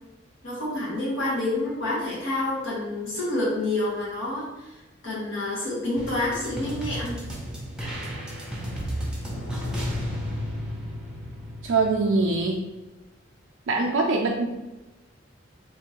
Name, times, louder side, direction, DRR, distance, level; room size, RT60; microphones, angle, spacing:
voice 1, 0.4-7.2, left 2 dB, 85° left, -6 dB, 1.2 m, -28 dB
sound 1, 6.0-12.5, equal, 5° right, 0.5 m, -33 dB
voice 2, 11.6-12.6 13.7-14.4, right 3 dB, 70° right, 0 dB, 0.4 m, -23 dB
3.6 x 2.6 x 2.9 m, 1.1 s
head